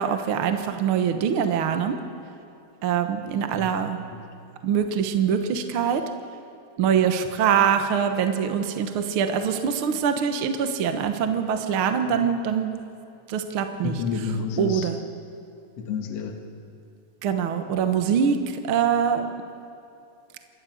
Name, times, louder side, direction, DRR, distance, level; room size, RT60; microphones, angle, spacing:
voice 1, 0.0-2.0 2.8-4.0 4.6-6.0 6.8-12.7 13.3-14.0 14.6-15.0 17.2-18.4 18.6-19.3, right 7 dB, 55° right, 7 dB, 1.6 m, -23 dB
voice 2, 13.8-14.9 15.8-16.4, left 5 dB, 60° left, 3 dB, 2.4 m, -30 dB
27.5 x 13.5 x 7.8 m, 2.7 s
omnidirectional pair, 3.5 m